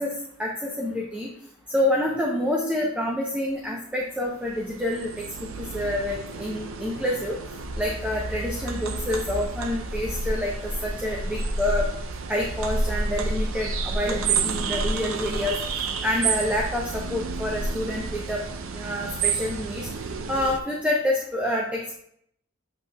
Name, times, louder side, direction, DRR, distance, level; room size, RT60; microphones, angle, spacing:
voice 1, 0.0-1.3 1.7-5.2 5.6-7.4 7.8-11.9 12.3-15.6 16.0-18.4 18.7-19.9 20.3-22.0, left 1 dB, 5° right, -2 dB, 0.7 m, -27 dB
sound 1, 4.1-20.6, right 4 dB, 75° right, 0.5 m, -30 dB
7.7 x 5.4 x 2.3 m, 0.69 s
head